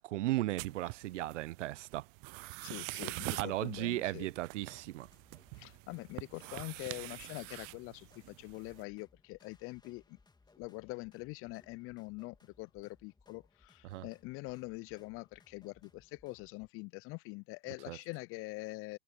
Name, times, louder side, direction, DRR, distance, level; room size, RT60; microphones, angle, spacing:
voice 1, 0.0-2.1 3.4-5.1 13.8-14.0 17.9-18.0, right 16 dB, 70° right, 0.7 m, -36 dB
sound 1, 0.6-8.8, right 35 dB, 40° right, 0.4 m, -45 dB
sound 2, 2.5-16.7, left 3 dB, 10° left, 2.8 m, -67 dB
voice 2, 2.6-4.3 5.6-10.2 10.6-19.0, left 23 dB, 35° left, 0.5 m, -44 dB
hypercardioid pair, 95°, 38 cm